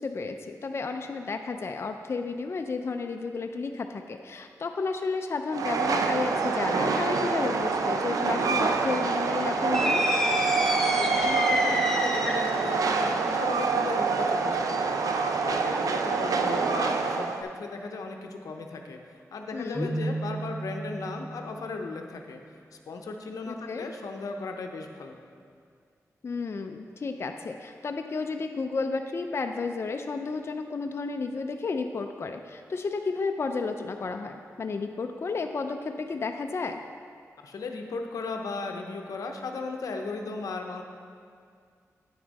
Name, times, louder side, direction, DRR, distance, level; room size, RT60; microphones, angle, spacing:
voice 1, 0.0-10.1 19.5-19.9 23.5-23.9 26.2-36.8, left 4 dB, 45° left, 5 dB, 0.4 m, -32 dB
Train, 5.5-17.4, right 4 dB, 80° right, 0.5 m, -26 dB
sound 1, 9.7-12.6, left 1 dB, 5° left, 0.9 m, -28 dB
voice 2, 11.0-15.0 15.4-22.4 22.7-25.2 37.4-40.8, left 3 dB, 85° left, 4 dB, 0.6 m, -36 dB
Keyboard (musical), 19.7-21.6, right 2 dB, 25° right, 1.3 m, -33 dB
8.8 x 6.1 x 4.1 m, 2.2 s
cardioid pair, 70°, 6 cm